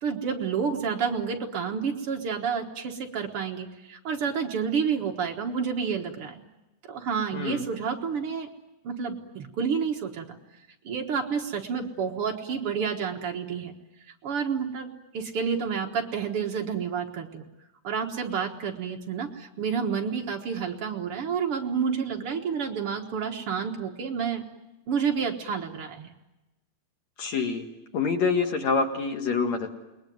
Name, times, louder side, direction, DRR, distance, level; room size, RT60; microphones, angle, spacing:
voice 1, 0.0-6.3 6.9-8.5 8.8-10.4 10.8-13.7 14.2-17.4 17.8-24.4 24.9-26.1, right 6 dB, 90° right, 2 dB, 1.2 m, -29 dB
voice 2, 7.3-7.6 27.2-27.6 27.9-29.7, left 5 dB, 50° left, 5 dB, 2.5 m, -26 dB
29.0 x 21.0 x 9.4 m, 1.0 s
omnidirectional pair, 4.9 m